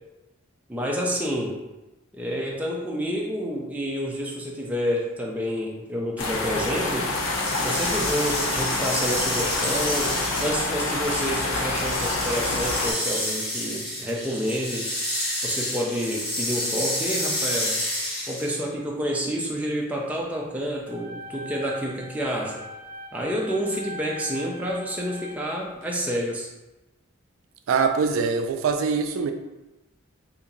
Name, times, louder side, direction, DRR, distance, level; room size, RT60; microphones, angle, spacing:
voice 1, 0.7-1.6 2.1-7.1 7.6-14.9 15.4-17.8 18.3-22.6 23.1-26.5, equal, 5° right, -2 dB, 0.4 m, -29 dB
sound 1, 6.2-12.9, left 2 dB, 80° left, 0.6 m, -27 dB
sound 2, 7.1-18.7, left 1 dB, 25° left, 1.1 m, -30 dB
sound 3, 20.9-25.8, equal, 55° right, 0.7 m, -40 dB
voice 2, 27.7-29.3, right 5 dB, 75° right, 6 dB, 0.3 m, -23 dB
2.8 x 2.7 x 3.8 m, 1.0 s
head